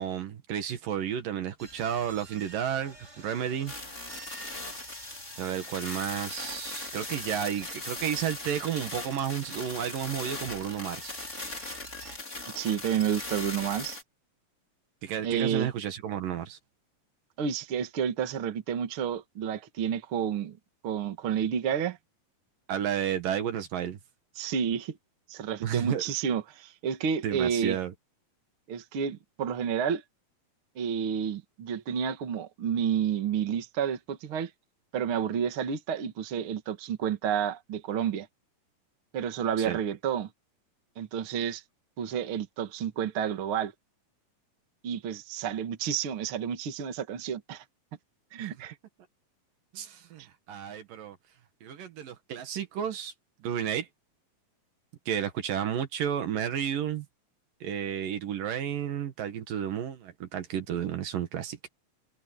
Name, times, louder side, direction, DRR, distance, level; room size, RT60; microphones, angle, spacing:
voice 1, 0.0-3.7 5.4-11.1 15.0-16.6 22.7-24.0 25.6-26.0 27.2-27.9 39.6-39.8 48.4-48.5 49.7-50.2 50.5-51.2 51.6-53.1 53.4-53.9 55.1-57.1 57.6-61.7, right 9 dB, 70° right, 3.3 m, -32 dB
sound 1, 1.6-12.2, right 1 dB, 20° right, 5.4 m, -50 dB
sound 2, 3.7-14.0, left 2 dB, 20° left, 4.7 m, -39 dB
voice 2, 12.6-14.0 15.2-15.7 17.4-20.6 20.8-22.0 24.4-25.0 25.3-27.8 28.7-30.0 30.8-34.5 34.9-38.3 39.1-40.3 41.0-41.6 42.0-43.7 44.8-47.6 48.3-48.7, right 8 dB, 45° right, 2.2 m, -30 dB
omnidirectional pair, 4.1 m